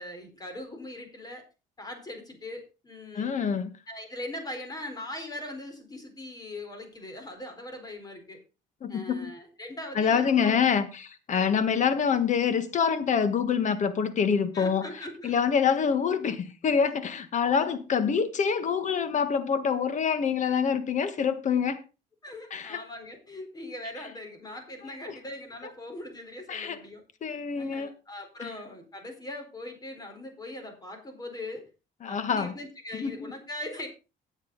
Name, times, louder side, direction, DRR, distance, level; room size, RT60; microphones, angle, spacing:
voice 1, 0.0-1.4 1.8-3.4 3.9-8.4 8.9-10.7 11.3-11.6 14.5-15.4 22.2-27.0 27.5-31.7 32.1-33.9, left 1 dB, 20° left, 4.3 m, -40 dB
voice 2, 3.1-3.7 8.8-9.3 9.9-14.8 15.2-21.8 22.5-22.8 25.1-25.2 26.5-26.8 27.2-27.9 28.4-28.5 32.0-32.5 33.0-33.1, left 6 dB, 45° left, 1.5 m, -26 dB
15.5 x 8.1 x 4.0 m
cardioid pair, 110°, 17 cm